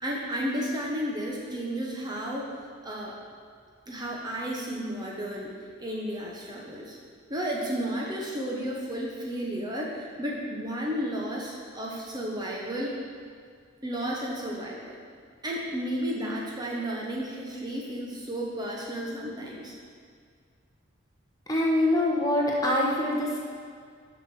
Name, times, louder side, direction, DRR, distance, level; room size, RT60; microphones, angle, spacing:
voice 1, 0.0-2.5 2.8-3.2 3.9-5.5 5.8-7.0 7.3-13.0 13.8-15.0 15.4-19.7, equal, 20° right, -3 dB, 1.0 m, -32 dB
voice 2, 21.5-23.4, left 1 dB, 20° left, -3 dB, 1.2 m, -24 dB
6.9 x 5.6 x 6.2 m, 2.1 s
head